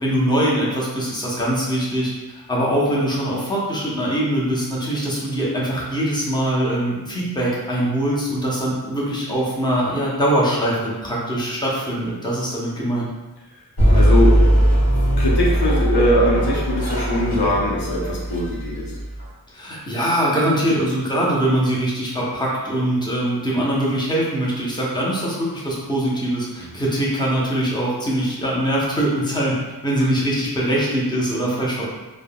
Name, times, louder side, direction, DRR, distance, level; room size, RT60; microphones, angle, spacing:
voice 1, 0.0-2.1 2.5-13.1 19.5-31.8, right 1 dB, 10° left, -6 dB, 0.7 m, -22 dB
sound 1, 13.8-19.3, right 1 dB, 65° left, 1.3 m, -19 dB
voice 2, 13.9-14.6 15.2-18.9 30.0-30.1, left 1 dB, 85° left, -4 dB, 0.7 m, -21 dB
3.4 x 2.0 x 2.2 m, 1.2 s
wide cardioid pair, 70°, 38 cm